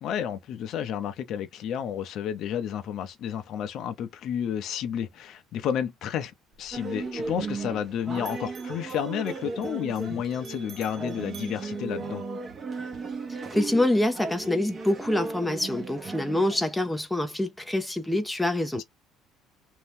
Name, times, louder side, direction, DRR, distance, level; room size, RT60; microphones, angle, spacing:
voice 1, 0.0-12.2 18.7-18.8, left 9 dB, 60° left, 0.6 m, -31 dB
Bell, 6.5-7.9 8.2-12.6, right 6 dB, 65° right, 1.3 m, -52 dB
sound 1, 6.7-16.6, right 3 dB, 30° right, 0.9 m, -36 dB
voice 2, 13.3-18.8, left 1 dB, 5° left, 0.6 m, -26 dB
2.7 x 2.1 x 3.4 m
cardioid pair, 110°, 0 cm